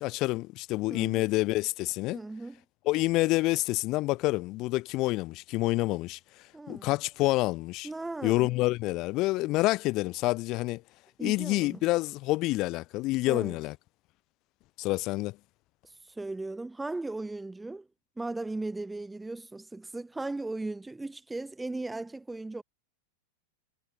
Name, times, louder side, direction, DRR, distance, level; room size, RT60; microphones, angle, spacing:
voice 1, 0.0-2.2 2.9-6.2 6.7-7.9 8.2-10.8 11.2-13.7 14.8-15.4, left 20 dB, 40° left, 0.3 m, -28 dB
voice 2, 0.9-1.2 2.1-2.6 6.5-6.9 7.8-8.5 11.2-11.8 13.3-13.6 16.0-17.9 18.2-22.6, right 2 dB, 5° right, 0.6 m, -37 dB
figure-of-eight pair, 90°, 0 cm